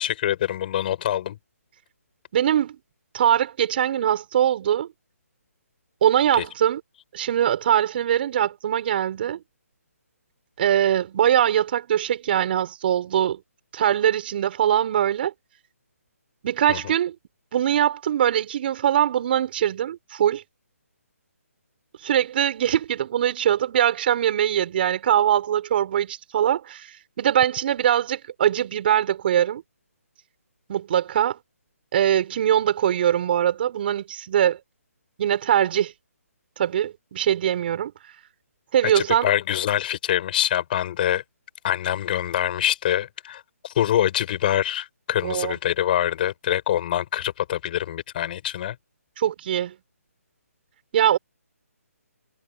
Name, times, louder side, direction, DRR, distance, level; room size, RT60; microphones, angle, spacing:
voice 1, 0.0-1.4 6.4-6.5 16.7-16.9 38.9-41.2 41.6-48.8, left 11 dB, 35° left, 7.3 m, -25 dB
voice 2, 2.3-2.8 3.1-4.9 6.0-6.8 7.1-9.4 10.6-13.4 13.7-15.3 16.4-17.1 17.5-20.4 22.0-29.6 30.7-31.4 31.9-34.6 35.2-35.9 36.6-37.9 38.7-39.3 45.2-45.5 49.2-49.7 50.9-51.2, right 10 dB, 40° right, 5.5 m, -22 dB
hypercardioid pair, 155°, 8 cm